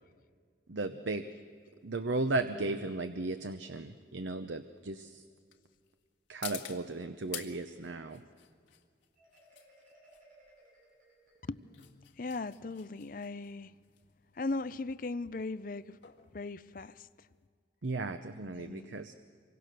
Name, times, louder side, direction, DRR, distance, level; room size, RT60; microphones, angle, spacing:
voice 1, 0.7-1.3 1.8-5.2 6.3-8.2 17.8-19.1, right 2 dB, 85° right, 0.8 m, -35 dB
sound 1, 0.8-17.5, left 12 dB, 80° left, 1.8 m, -51 dB
Marimba xylophone, 9.2-11.9, right 1 dB, 45° right, 6.9 m, -62 dB
voice 2, 11.5-13.7 14.3-16.0 16.3-17.1 18.5-19.0, left 3 dB, 45° left, 0.5 m, -38 dB
27.5 x 24.5 x 6.7 m
head